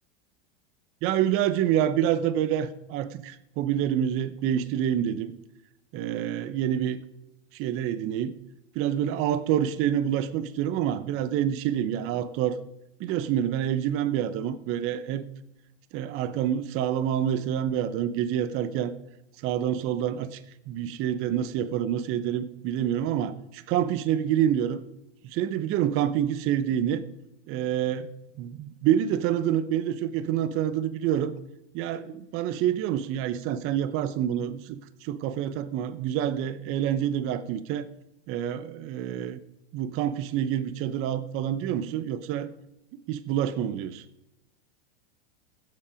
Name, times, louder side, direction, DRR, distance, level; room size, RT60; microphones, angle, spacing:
voice 1, 1.0-5.3 5.9-7.0 7.5-8.4 8.7-12.6 13.0-15.2 15.9-18.9 19.4-20.4 20.7-24.8 25.2-27.0 27.5-28.1 28.4-31.3 31.7-37.9 38.3-39.4 39.7-42.5 43.1-44.0, right 10 dB, 40° right, 13 dB, 0.8 m, -27 dB
15.5 x 7.6 x 5.0 m, 0.89 s
supercardioid pair, 125°, 34 cm